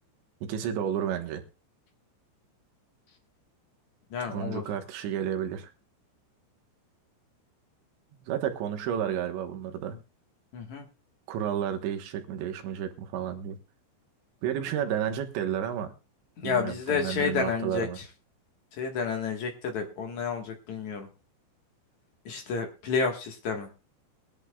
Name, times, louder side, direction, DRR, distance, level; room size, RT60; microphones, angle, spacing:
voice 1, 0.4-1.4 4.2-5.7 8.2-10.0 11.3-13.6 14.4-15.9 16.4-18.0, right 9 dB, 75° right, 5 dB, 3.5 m, -31 dB
voice 2, 4.1-4.6 10.5-10.9 16.4-18.0 18.7-21.1 22.3-23.7, left 5 dB, 60° left, 3 dB, 2.1 m, -30 dB
21.5 x 11.0 x 2.3 m, 0.31 s
omnidirectional pair, 5.4 m